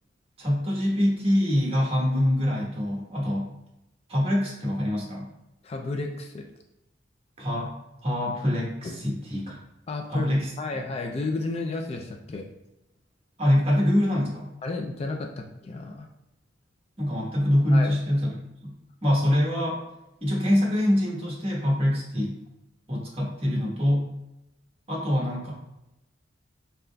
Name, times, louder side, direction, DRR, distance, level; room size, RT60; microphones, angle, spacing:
voice 1, 0.4-3.5 4.1-5.3 7.4-7.7 8.0-9.6 10.1-10.5 13.4-14.5 17.0-18.8 19.0-19.8 20.2-22.4 22.9-24.1 24.9-25.5, left 1 dB, 30° right, -3 dB, 1.1 m, -24 dB
voice 2, 5.6-6.5 8.8-9.2 9.9-12.4 14.6-16.1 17.7-17.9, left 3 dB, 30° left, 3 dB, 0.3 m, -32 dB
4.2 x 3.8 x 2.2 m, 0.91 s
head